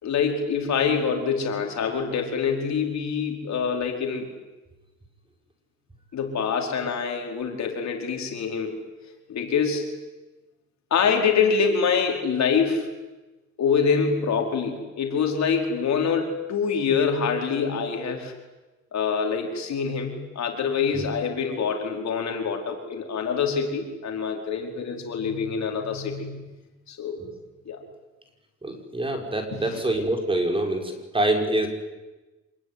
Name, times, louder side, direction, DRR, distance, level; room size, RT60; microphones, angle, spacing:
voice 1, 0.0-4.3 6.1-8.8 9.3-9.9 10.9-12.9 13.6-18.3 18.9-26.4 26.9-27.2 27.7-27.8 29.5-29.8, left 6 dB, 65° left, 2 dB, 4.8 m, -25 dB
voice 2, 28.6-31.7, right 1 dB, 15° right, 4 dB, 5.5 m, -25 dB
26.5 x 20.0 x 9.7 m, 1.1 s
cardioid pair, 90°, 30 cm